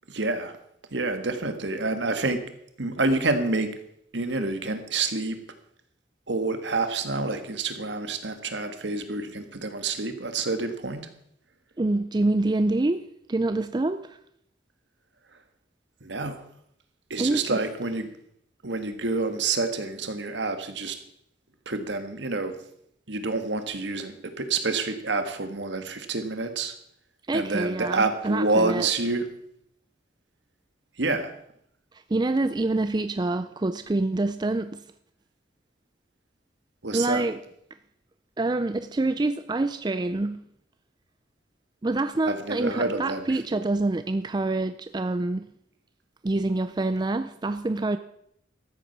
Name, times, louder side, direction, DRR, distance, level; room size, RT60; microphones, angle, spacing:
voice 1, 0.1-0.5 0.9-2.4 2.8-3.7 4.1-5.4 6.3-11.1 16.0-16.4 17.1-18.1 18.6-20.9 21.7-22.5 23.1-26.7 27.3-29.3 31.0-31.3 36.8-37.3 42.3-43.2 43.5-43.6, right 3 dB, 70° right, 1.5 m, -28 dB
voice 2, 11.8-14.2 17.2-17.6 27.3-28.9 32.1-34.8 36.9-37.4 38.4-40.4 41.8-45.5 46.2-48.0, right 2 dB, 25° right, 0.4 m, -26 dB
13.5 x 8.2 x 6.0 m
head